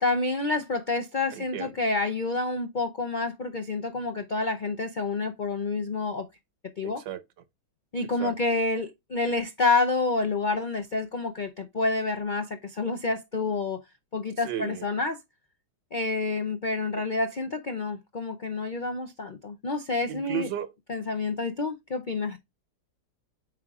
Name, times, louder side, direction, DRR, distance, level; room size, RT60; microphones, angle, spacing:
voice 1, 0.0-6.3 6.8-7.0 7.9-13.8 14.1-15.2 15.9-20.5 20.9-22.4, left 3 dB, 70° left, 0.4 m, -28 dB
voice 2, 1.3-1.7 6.8-7.2 8.2-8.3 14.4-14.9 20.1-20.7, right 11 dB, 90° right, 1.5 m, -34 dB
8.0 x 5.0 x 2.4 m
omnidirectional pair, 1.9 m